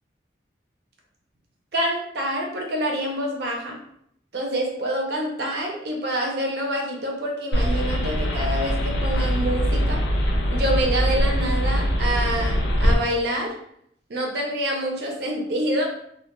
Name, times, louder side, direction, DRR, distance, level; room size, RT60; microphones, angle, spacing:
voice 1, 1.7-3.8 4.3-10.0 10.5-13.5 14.1-15.8, right 1 dB, 60° right, 0 dB, 0.5 m, -26 dB
sound 1, 7.5-13.0, equal, 70° left, 0.4 m, -22 dB
2.2 x 2.1 x 2.9 m, 0.71 s
head